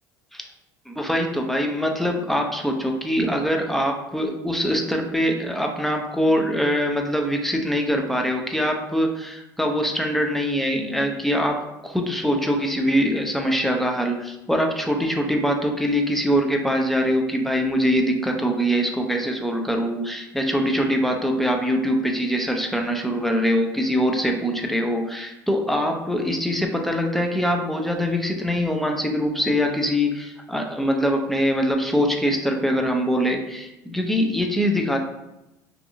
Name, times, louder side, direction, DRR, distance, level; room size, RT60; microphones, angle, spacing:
voice 1, 0.9-11.6 11.8-35.0, equal, ahead, 2 dB, 0.4 m, -23 dB
2.6 x 2.4 x 2.6 m, 0.93 s
supercardioid pair, 85°, 10 cm